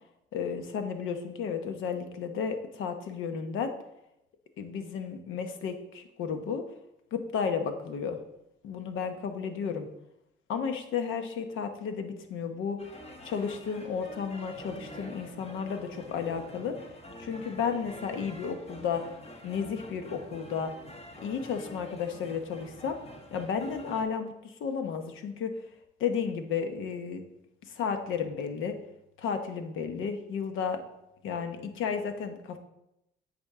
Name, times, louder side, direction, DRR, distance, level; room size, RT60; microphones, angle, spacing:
voice 1, 0.3-3.7 4.6-6.6 7.1-8.2 8.6-9.9 10.5-12.8 13.2-16.8 17.2-19.0 19.4-20.7 21.2-23.0 23.3-25.5 26.0-27.2 27.7-28.7 29.2-30.8 31.2-32.6, left 6 dB, 85° left, 7 dB, 0.9 m, -33 dB
sound 1, 12.8-24.0, equal, 30° left, 1.3 m, -47 dB
8.5 x 5.3 x 3.6 m, 0.85 s
cardioid pair, 90°, 20 cm